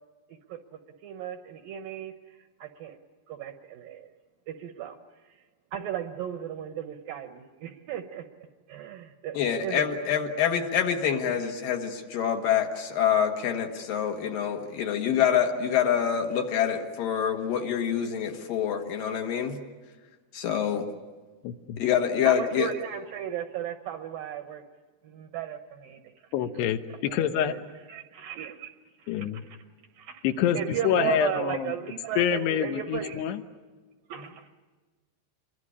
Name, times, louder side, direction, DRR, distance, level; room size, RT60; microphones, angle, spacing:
voice 1, 0.3-3.0 3.3-4.1 4.5-5.0 5.3-5.4 5.7-8.3 8.7-10.0 22.2-24.6 25.0-26.3 26.5-27.6 27.9-28.7 29.0-29.6 29.9-30.2 30.5-33.2 34.1-34.5, right 10 dB, 70° right, 8 dB, 2.3 m, -36 dB
voice 2, 9.3-19.6 20.3-20.9 21.8-22.7, left 8 dB, 60° left, 4 dB, 2.9 m, -26 dB
voice 3, 21.4-21.8 26.3-27.5 29.1-29.4 30.2-30.6 30.8-31.7 32.2-33.4, left 9 dB, 80° left, 8 dB, 3.0 m, -26 dB
27.0 x 22.5 x 9.8 m, 1.3 s
omnidirectional pair, 4.9 m